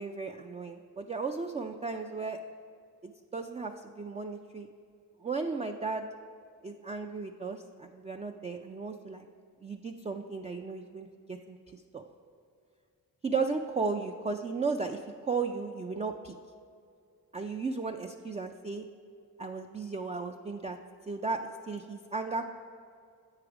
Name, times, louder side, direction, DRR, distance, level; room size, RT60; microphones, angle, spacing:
voice 1, 0.0-2.4 3.0-4.7 5.2-6.1 6.6-9.3 9.6-12.0 13.2-16.3 17.3-18.9 19.4-20.8 21.1-22.5, right 4 dB, 20° right, 4 dB, 0.3 m, -35 dB
7.7 x 4.9 x 4.8 m, 2.4 s
cardioid pair, 45°, 39 cm